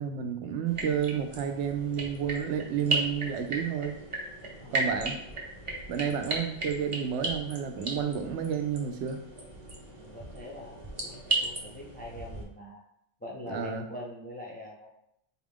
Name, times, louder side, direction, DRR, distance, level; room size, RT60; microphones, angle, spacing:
voice 1, 0.0-4.0 4.7-5.2 5.9-9.2 13.5-13.8, right 8 dB, 85° right, 6 dB, 0.9 m, -31 dB
sound 1, 0.7-12.4, right 2 dB, 35° right, 0.7 m, -35 dB
voice 2, 4.6-4.9 10.0-12.8 13.2-14.9, left 1 dB, 15° left, -2 dB, 0.4 m, -43 dB
4.1 x 2.4 x 3.5 m, 0.75 s
omnidirectional pair, 1.1 m